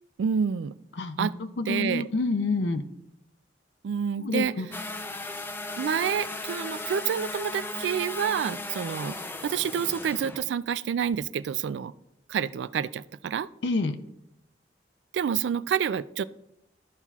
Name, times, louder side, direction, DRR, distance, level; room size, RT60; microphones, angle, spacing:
voice 1, 0.2-0.7 1.2-1.3 1.7-2.1 3.8-4.5 5.8-9.2 9.4-11.9 12.3-13.5 15.1-16.2, right 7 dB, 75° right, 17 dB, 0.3 m, -28 dB
voice 2, 1.0-2.8 4.2-4.7 13.6-14.0, left 3 dB, 75° left, 8 dB, 0.5 m, -28 dB
sound 1, 4.7-10.4, left 2 dB, 10° left, 0.4 m, -36 dB
13.5 x 5.6 x 2.4 m, 0.81 s
head